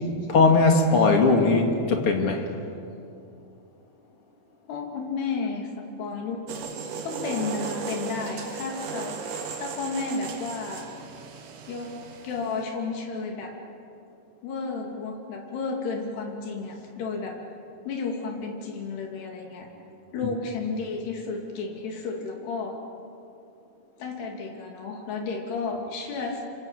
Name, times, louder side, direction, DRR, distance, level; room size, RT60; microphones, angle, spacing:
voice 1, 0.3-2.5, left 3 dB, 40° left, 3 dB, 2.9 m, -19 dB
voice 2, 4.7-6.4 7.0-9.2 9.5-10.9 11.7-13.6 14.4-17.4 17.8-19.7 20.1-22.8 24.0-26.4, left 4 dB, 80° left, 2 dB, 5.0 m, -32 dB
sound 1, 6.5-12.6, right 5 dB, 60° right, 3.3 m, -36 dB
27.0 x 26.5 x 8.3 m, 2.6 s
omnidirectional pair, 4.6 m